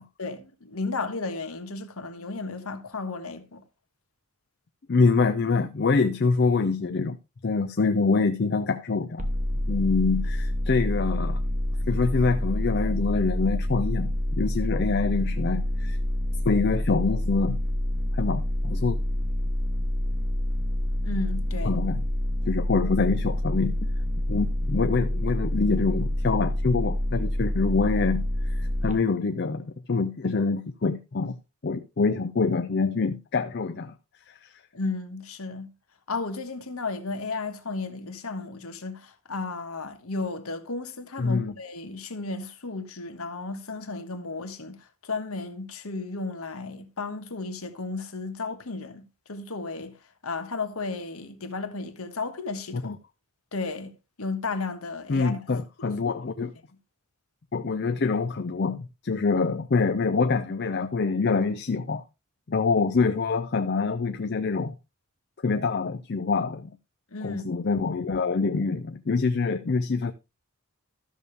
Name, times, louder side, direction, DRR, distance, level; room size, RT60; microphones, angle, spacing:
voice 1, 0.2-3.6 21.0-21.8 34.7-35.7 36.1-52.9 53.5-53.9 54.2-55.3 55.8-55.9 67.1-67.4, left 3 dB, 75° left, 1.4 m, -34 dB
voice 2, 4.9-7.2 7.4-9.3 9.7-11.4 11.9-16.0 16.5-17.6 18.1-19.0 21.6-22.0 22.5-23.9 24.3-31.4 31.6-33.9 34.3-34.5 41.2-41.5 52.7-53.0 55.1-56.5 57.5-62.0 62.5-64.7 65.4-66.7 67.2-70.1, left 4 dB, 45° left, 0.5 m, -25 dB
sound 1, 9.2-28.9, left 1 dB, 35° right, 0.9 m, -27 dB
13.0 x 6.9 x 3.3 m
head